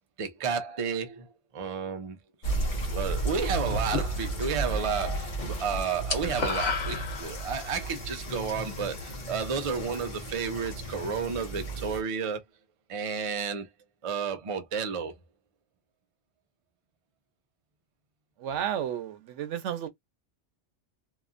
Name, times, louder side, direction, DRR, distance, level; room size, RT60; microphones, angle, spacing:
voice 1, 0.2-2.2 2.5-12.4 12.9-13.7 14.0-15.1, right 6 dB, 40° right, 0.5 m, -32 dB
sound 1, 2.4-12.0, right 1 dB, 45° left, 0.9 m, -34 dB
sound 2, 3.7-4.7 5.0-7.7, left 4 dB, 90° left, 1.4 m, -32 dB
voice 2, 18.4-19.9, right 9 dB, 85° right, 1.0 m, -32 dB
2.8 x 2.4 x 2.5 m
omnidirectional pair, 1.2 m